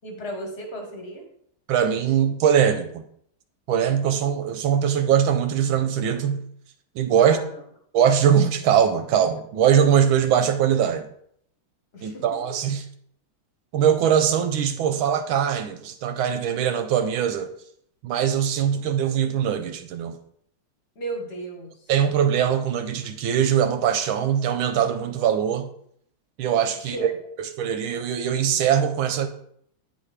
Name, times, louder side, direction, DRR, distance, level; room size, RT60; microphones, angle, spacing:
voice 1, 0.0-1.3 7.2-7.6 11.9-12.2 20.9-21.9 26.8-27.1, right 1 dB, 35° left, 1 dB, 1.3 m, -35 dB
voice 2, 1.7-3.0 3.7-6.4 7.0-7.4 7.9-11.1 12.0-12.8 13.7-17.5 18.0-20.2 21.9-25.7 26.4-27.1 27.6-29.3, right 8 dB, 75° right, 8 dB, 1.3 m, -21 dB
9.5 x 4.1 x 3.3 m, 0.67 s
omnidirectional pair, 2.4 m